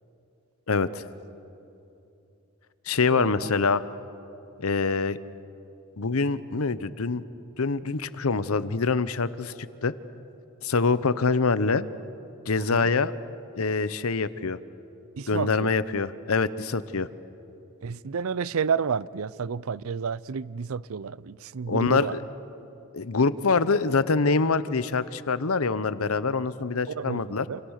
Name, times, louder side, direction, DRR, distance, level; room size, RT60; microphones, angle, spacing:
voice 1, 0.7-1.0 2.9-3.8 4.6-5.2 6.0-7.2 7.6-9.5 9.8-9.9 10.6-11.8 12.5-13.1 13.6-14.6 15.3-17.1 21.7-22.2 22.9-27.5, left 4 dB, 90° left, 0.9 m, -25 dB
voice 2, 3.1-3.5 12.7-12.9 15.2-15.7 17.8-22.1 26.9-27.6, right 6 dB, 80° right, 0.5 m, -30 dB
28.5 x 28.0 x 6.5 m
head